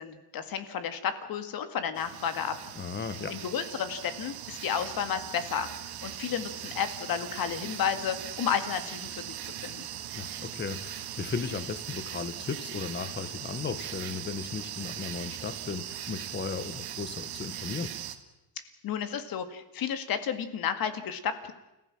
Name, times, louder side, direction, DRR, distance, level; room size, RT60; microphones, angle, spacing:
voice 1, 0.0-2.6 3.3-5.7 6.0-9.4 9.6-9.9 18.8-21.5, left 8 dB, 55° left, 10 dB, 2.0 m, -32 dB
sound 1, 2.0-18.2, right 11 dB, 60° right, 1.8 m, -40 dB
voice 2, 2.7-3.4 10.1-17.9, left 5 dB, 25° left, 13 dB, 1.3 m, -36 dB
30.0 x 15.0 x 6.1 m, 0.97 s
cardioid pair, 145°, 43 cm